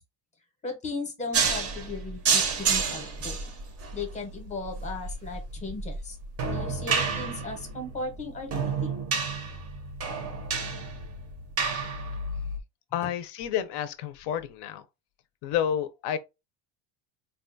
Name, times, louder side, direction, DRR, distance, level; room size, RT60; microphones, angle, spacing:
voice 1, 0.6-3.4 3.9-6.2 6.5-9.0 13.0-13.1, left 3 dB, 15° left, 0.7 m, -36 dB
sound 1, 1.3-12.6, right 5 dB, 30° right, 0.5 m, -30 dB
voice 2, 12.9-14.8 15.4-16.2, left 9 dB, 55° left, 0.5 m, -30 dB
3.7 x 2.3 x 2.5 m
cardioid pair, 165°, 49 cm